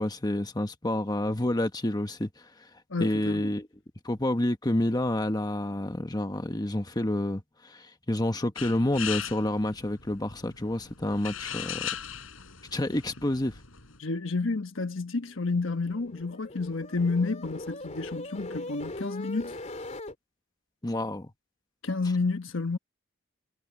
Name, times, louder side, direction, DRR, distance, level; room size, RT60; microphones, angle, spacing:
voice 1, 0.0-2.3 3.0-3.7 4.0-11.9 12.7-13.5 20.8-21.3, left 1 dB, 20° left, 1.2 m, -29 dB
voice 2, 2.9-3.5 14.0-19.6 21.8-22.8, left 3 dB, 70° left, 1.2 m, -30 dB
sound 1, 8.6-14.0, left 9 dB, 85° left, 4.5 m, -39 dB
sound 2, 15.4-20.1, left 2 dB, 35° left, 3.6 m, -40 dB
head